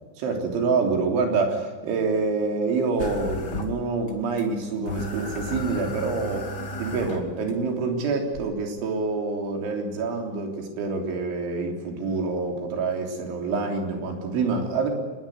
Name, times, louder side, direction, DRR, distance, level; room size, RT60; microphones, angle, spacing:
voice 1, 0.2-6.5 6.8-14.9, right 4 dB, 90° right, 2 dB, 6.0 m, -26 dB
sound 1, 3.0-4.1 4.4-4.5 4.9-7.5 8.3-8.4, left 1 dB, 30° left, 2.2 m, -34 dB
25.5 x 21.0 x 9.4 m, 1.4 s
omnidirectional pair, 5.3 m